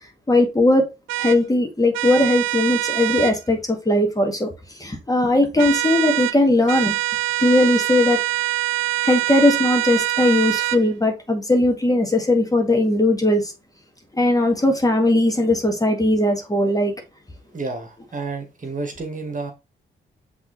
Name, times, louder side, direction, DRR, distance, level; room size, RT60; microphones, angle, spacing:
voice 1, 0.3-0.9 1.2-4.5 4.8-7.0 7.4-8.2 9.0-13.5 14.2-16.9, left 1 dB, 15° left, 1.9 m, -19 dB
sound 1, 1.1-1.4 1.9-3.4 5.6-6.4 6.7-10.8, right 18 dB, 80° right, 0.4 m, -24 dB
voice 2, 17.5-19.5, right 3 dB, 40° right, 2.1 m, -30 dB
5.9 x 3.8 x 4.2 m
supercardioid pair, 65°, 20 cm